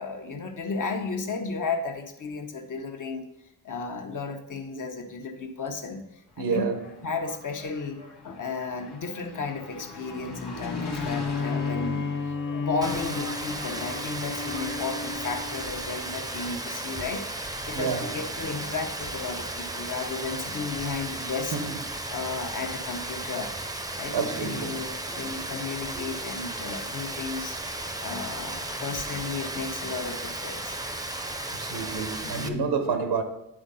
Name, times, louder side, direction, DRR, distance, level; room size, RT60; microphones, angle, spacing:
voice 1, 0.0-3.2 3.6-6.0 6.4-6.6 7.0-21.6 22.1-23.5 24.0-27.6 28.0-31.2 32.2-32.7, left 4 dB, 50° left, 1.1 m, -34 dB
Engine, 6.3-15.2, left 3 dB, 90° left, 1.4 m, -40 dB
voice 2, 6.4-6.8 17.7-18.2 21.5-21.8 24.1-24.8 25.2-25.5 25.9-26.0 31.5-33.2, right 5 dB, 90° right, 1.1 m, -29 dB
Bowed string instrument, 10.6-16.1, left 4 dB, 30° left, 0.8 m, -33 dB
Rain, 12.8-32.5, right 2 dB, 10° right, 0.6 m, -35 dB
9.1 x 3.7 x 5.6 m
cardioid pair, 80°, 38 cm